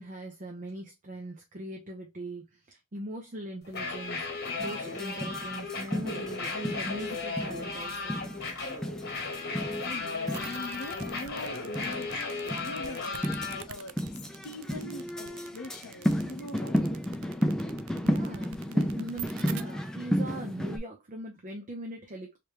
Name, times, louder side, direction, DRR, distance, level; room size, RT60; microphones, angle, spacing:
voice 1, 0.0-8.2 18.0-22.4, right 1 dB, 35° right, 0.6 m, -41 dB
sound 1, 3.6-13.6, left 3 dB, 50° left, 1.1 m, -35 dB
sound 2, 4.6-20.8, equal, 5° left, 0.4 m, -33 dB
voice 2, 9.5-17.0, left 2 dB, 85° left, 0.6 m, -43 dB
sound 3, 10.3-19.6, right 10 dB, 70° right, 0.4 m, -44 dB
3.3 x 3.1 x 3.2 m
head